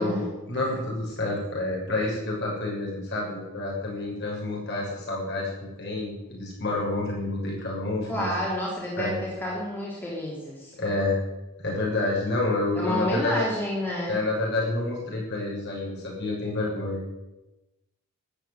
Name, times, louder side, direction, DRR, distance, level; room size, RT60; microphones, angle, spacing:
voice 1, 0.0-5.5 5.8-8.3 9.0-9.1 10.8-11.2 11.6-13.4 14.1-17.0, left 2 dB, 50° left, -3 dB, 6.8 m, -28 dB
voice 2, 8.1-10.7 12.7-14.2, left 1 dB, 10° left, -5 dB, 3.8 m, -29 dB
13.5 x 9.9 x 9.5 m, 1.0 s
head